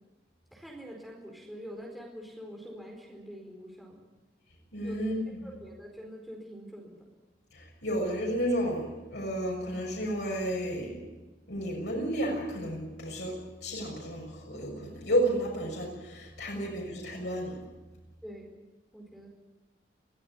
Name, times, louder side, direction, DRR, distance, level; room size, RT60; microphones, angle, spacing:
voice 1, 0.5-4.0 4.8-4.9 5.4-7.0 18.2-18.5 18.9-19.3, equal, ahead, -2 dB, 4.6 m, -45 dB
voice 2, 4.7-5.5 7.5-11.1 11.5-17.6, equal, 80° left, -2 dB, 6.5 m, -32 dB
23.0 x 15.5 x 9.9 m, 1.1 s
head